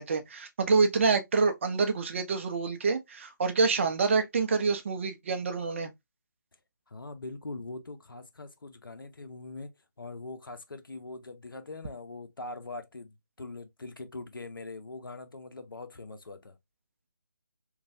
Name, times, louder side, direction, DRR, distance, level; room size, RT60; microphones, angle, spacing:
voice 1, 0.0-5.9, right 4 dB, 35° right, 0.5 m, -27 dB
voice 2, 6.9-9.7 10.0-16.6, left 3 dB, 85° left, 0.7 m, -42 dB
3.1 x 2.2 x 2.6 m
figure-of-eight pair, 155°, 11 cm